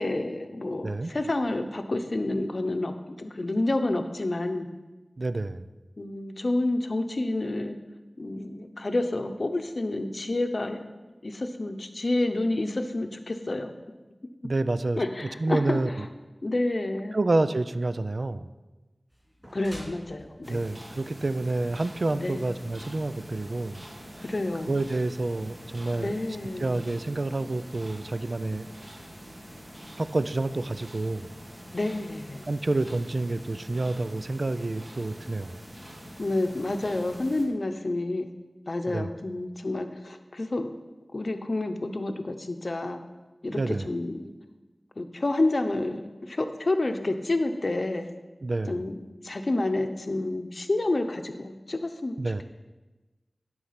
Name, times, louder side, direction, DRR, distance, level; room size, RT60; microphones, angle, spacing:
voice 1, 0.0-4.7 6.0-7.8 8.2-10.9 11.2-13.7 15.0-15.8 16.4-17.2 19.5-20.6 22.1-22.4 24.2-24.8 26.0-26.8 31.7-32.4 36.2-38.3 38.7-40.7 41.1-43.0 43.4-44.3 45.0-46.0 46.3-48.1 48.7-52.2, left 2 dB, 60° left, 7 dB, 0.7 m, -29 dB
voice 2, 5.2-5.7 14.4-16.1 17.1-18.5 20.4-23.8 24.1-24.2 24.7-26.1 26.6-28.7 30.0-31.3 32.4-35.6 38.9-39.1 43.5-43.9 48.4-48.8 52.2-52.4, right 2 dB, 60° right, 12 dB, 0.4 m, -28 dB
sound 1, 19.1-24.4, equal, ahead, 3.3 m, -51 dB
sound 2, 20.4-37.5, equal, 35° right, 1.9 m, -45 dB
11.5 x 4.6 x 5.7 m, 1.2 s
wide cardioid pair, 50°, 0 cm